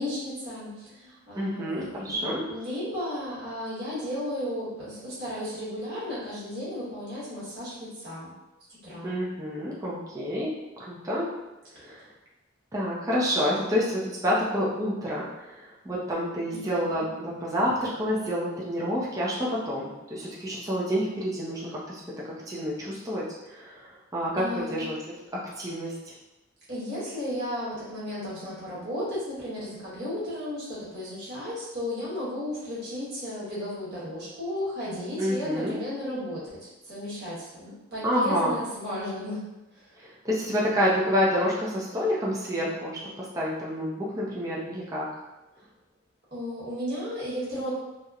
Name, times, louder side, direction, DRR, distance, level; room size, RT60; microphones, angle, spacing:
voice 1, 0.0-8.3 8.8-9.2 11.9-12.0 16.5-17.1 24.3-24.9 26.7-39.4 46.3-47.7, left 1 dB, 55° right, -9 dB, 1.1 m, -34 dB
voice 2, 1.4-2.4 9.0-10.5 10.8-11.3 11.8-12.0 12.7-22.0 22.5-23.2 23.5-25.2 25.6-25.9 35.2-35.8 38.0-38.6 40.0-45.1, equal, 20° right, -6 dB, 0.4 m, -28 dB
2.8 x 2.0 x 2.3 m, 1.0 s
head